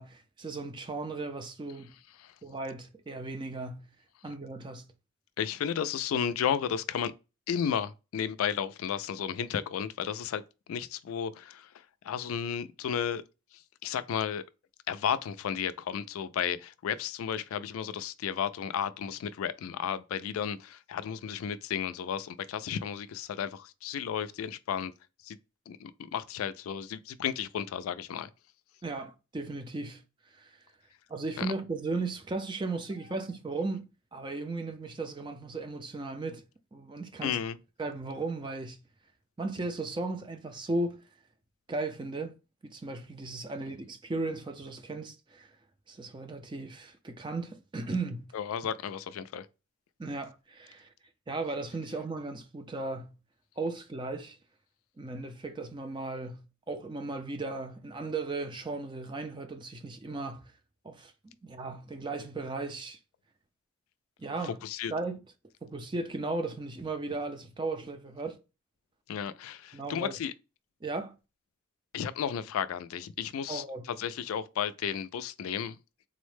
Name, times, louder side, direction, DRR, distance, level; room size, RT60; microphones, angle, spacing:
voice 1, 0.0-1.9 2.4-3.9 4.2-4.9 28.8-30.0 30.3-30.5 31.1-36.4 36.7-37.4 37.8-38.8 39.4-41.0 41.7-42.4 42.6-45.5 45.9-48.3 50.0-50.9 51.3-53.1 53.6-54.4 55.0-60.5 60.8-63.0 64.2-64.6 64.9-65.2 65.6-68.4 69.7-70.2 70.8-71.1 73.5-73.9, right 3 dB, 20° right, 0.4 m, -36 dB
voice 2, 5.4-7.1 7.5-10.4 10.7-13.2 13.5-14.4 14.9-24.9 25.2-25.4 25.7-28.3 31.4-31.5 37.2-37.6 48.3-49.5 64.4-64.9 69.1-70.3 71.9-75.8, left 8 dB, 85° left, 0.3 m, -33 dB
3.8 x 2.1 x 3.1 m
head